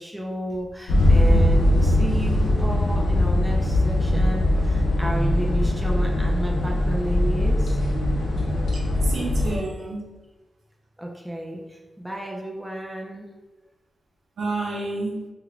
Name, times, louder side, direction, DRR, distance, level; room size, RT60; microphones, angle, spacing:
voice 1, 0.0-7.8 11.0-13.3, right 1 dB, 5° right, -1 dB, 0.4 m, -32 dB
sound 1, 0.9-9.6, left 1 dB, 65° left, 0.5 m, -21 dB
voice 2, 9.0-10.1 14.4-15.3, right 2 dB, 85° right, -3 dB, 0.8 m, -29 dB
2.9 x 2.4 x 3.1 m, 1.1 s
wide cardioid pair, 160°, 0 cm